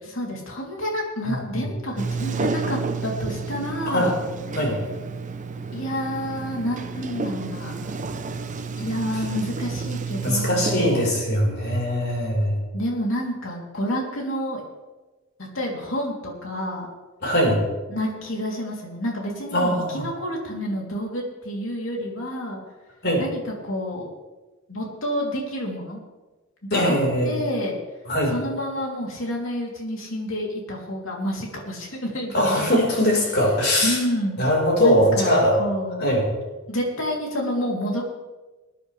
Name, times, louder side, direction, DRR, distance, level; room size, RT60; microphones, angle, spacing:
voice 1, 0.0-4.2 5.7-7.9 8.8-11.1 12.7-14.6 15.5-16.9 17.9-22.6 23.2-24.1 24.7-26.0 26.6-27.0 27.2-27.7 28.3-32.9 33.8-34.5 34.8-36.1 36.7-38.0, equal, 75° left, -1 dB, 3.1 m, -29 dB
voice 2, 1.2-1.6 3.9-4.1 4.5-4.8 10.2-12.6 17.2-17.6 19.5-20.1 23.0-23.2 26.7-27.3 28.1-28.3 32.3-34.0 34.4-35.6 36.0-36.2, equal, 55° left, -2 dB, 4.5 m, -21 dB
Sliding door, 2.0-11.1, right 4 dB, 40° right, 0.8 m, -30 dB
21.0 x 10.0 x 3.4 m, 1.2 s
head